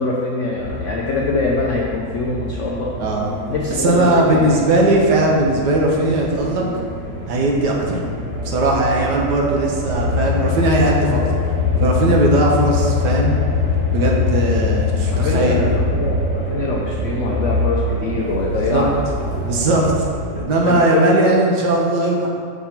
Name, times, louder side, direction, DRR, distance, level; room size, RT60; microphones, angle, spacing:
voice 1, 0.0-3.1 3.5-4.5 15.1-19.0 20.6-21.4, left 3 dB, 70° left, -3 dB, 0.7 m, -23 dB
sound 1, 0.6-20.4, left 3 dB, 40° right, 1.3 m, -23 dB
voice 2, 3.0-3.3 3.8-6.7 7.3-8.1 8.4-11.2 11.7-13.4 13.9-15.6 18.5-18.9 19.4-22.3, right 2 dB, 70° right, -1 dB, 1.4 m, -18 dB
5.9 x 3.7 x 5.7 m, 2.1 s
omnidirectional pair, 2.0 m